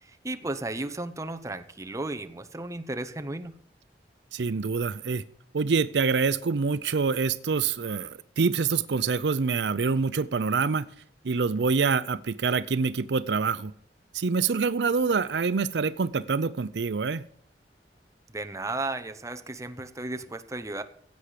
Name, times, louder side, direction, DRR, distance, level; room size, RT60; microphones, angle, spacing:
voice 1, 0.0-3.5 18.3-20.8, right 2 dB, 20° right, 8 dB, 0.8 m, -34 dB
voice 2, 4.3-5.2 5.5-10.9 11.2-13.7 14.1-17.3, right 5 dB, 70° right, 15 dB, 0.5 m, -26 dB
16.0 x 8.2 x 5.0 m, 0.65 s
head